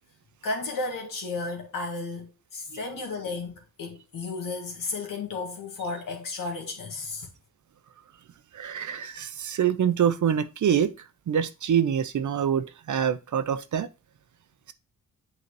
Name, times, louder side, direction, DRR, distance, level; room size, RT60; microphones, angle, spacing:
voice 1, 0.4-7.3, left 3 dB, 85° left, 1.8 m, -33 dB
voice 2, 8.5-10.9 11.3-13.9, right 8 dB, 65° right, 0.7 m, -25 dB
7.9 x 4.0 x 3.2 m
cardioid pair, 75°, 32 cm